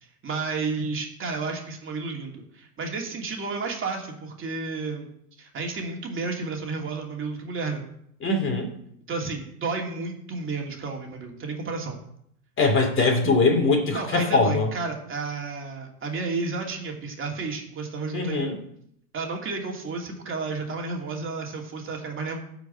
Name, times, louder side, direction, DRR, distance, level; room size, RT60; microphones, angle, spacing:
voice 1, 0.0-5.1 5.4-7.8 9.1-12.0 13.9-18.5 19.1-22.4, right 4 dB, 25° right, 1 dB, 2.8 m, -32 dB
voice 2, 8.2-8.7 12.6-14.7 18.1-18.6, left 3 dB, 25° left, 4 dB, 2.6 m, -22 dB
12.5 x 5.2 x 8.9 m, 0.71 s
hypercardioid pair, 95°, 47 cm